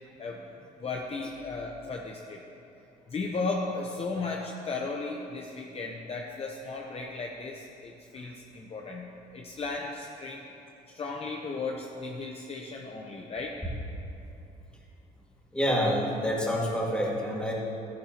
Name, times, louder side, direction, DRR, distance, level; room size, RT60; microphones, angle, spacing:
voice 1, 0.8-2.4 3.1-10.5 10.9-13.6, left 3 dB, 35° left, 0 dB, 0.9 m, -35 dB
voice 2, 15.5-17.5, equal, 5° left, -3 dB, 2.0 m, -27 dB
14.0 x 11.5 x 3.0 m, 2.7 s
cardioid pair, 110°, 17 cm